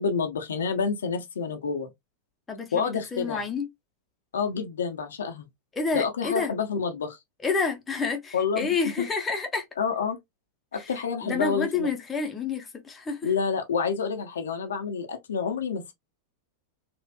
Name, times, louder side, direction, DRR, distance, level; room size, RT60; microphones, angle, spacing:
voice 1, 0.0-1.9 2.7-3.4 4.3-5.5 5.9-7.2 8.3-9.1 9.8-10.2 10.7-11.9 13.2-15.9, left 5 dB, 65° left, 0.8 m, -28 dB
voice 2, 2.5-3.7 5.7-6.5 7.4-9.6 10.7-10.8 11.2-13.3, left 4 dB, 15° left, 0.9 m, -29 dB
4.3 x 2.5 x 2.2 m
figure-of-eight pair, 90°, 0 cm